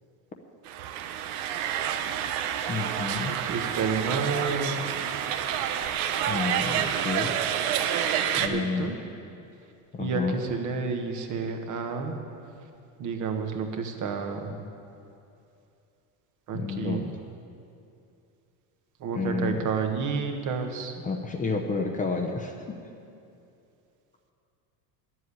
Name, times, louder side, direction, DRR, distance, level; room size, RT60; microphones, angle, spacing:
sound 1, 0.7-8.5, right 9 dB, 85° right, 1.0 m, -28 dB
voice 1, 2.7-3.3 6.2-7.4 8.4-9.0 9.9-10.4 14.5-14.7 16.5-17.1 19.1-19.7 21.0-22.8, left 4 dB, 20° left, 2 dB, 0.8 m, -30 dB
voice 2, 3.4-4.8 8.4-9.0 10.0-12.2 13.0-14.5 16.5-17.0 19.0-20.9, right 5 dB, 45° right, 5 dB, 1.4 m, -30 dB
10.5 x 7.8 x 9.7 m, 2.6 s
cardioid pair, 135°, 43 cm